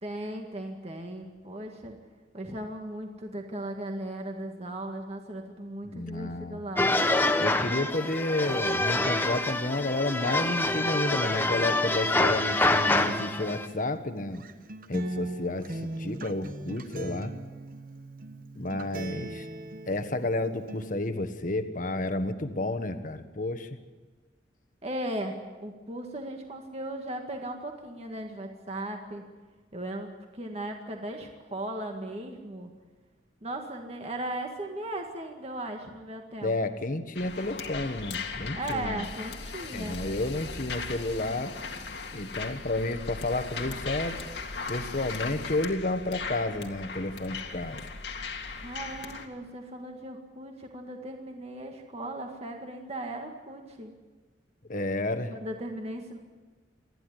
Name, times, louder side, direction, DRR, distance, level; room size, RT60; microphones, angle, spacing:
voice 1, 0.0-2.0 2.3-6.9 24.8-29.2 29.7-32.7 33.4-36.5 38.5-40.0 48.6-53.9 55.3-56.2, right 1 dB, 35° right, 3 dB, 1.9 m, -37 dB
voice 2, 5.8-6.6 7.4-14.4 14.9-17.3 18.5-19.5 19.9-23.8 36.4-39.0 39.7-41.5 42.1-44.2 44.7-47.8 54.7-55.3, left 2 dB, 50° left, 9 dB, 1.4 m, -31 dB
sound 1, 6.8-13.7, left 2 dB, 10° left, 1.1 m, -26 dB
Acoustic guitar, 12.9-20.9, right 1 dB, 50° right, 1.1 m, -39 dB
sound 2, 37.2-49.3, left 4 dB, 75° left, 2.1 m, -38 dB
28.5 x 11.0 x 9.8 m, 1.3 s
head